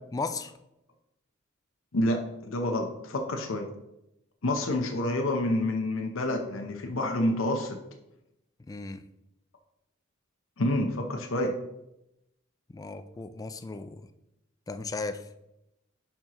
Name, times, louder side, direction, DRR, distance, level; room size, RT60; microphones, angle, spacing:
voice 1, 0.1-0.5 8.7-9.0 12.7-14.1 14.7-15.3, left 3 dB, 15° left, 10 dB, 0.3 m, -35 dB
voice 2, 1.9-3.7 4.4-7.8 10.6-11.6, left 1 dB, 70° left, 3 dB, 0.8 m, -28 dB
10.5 x 4.5 x 3.0 m, 0.88 s
head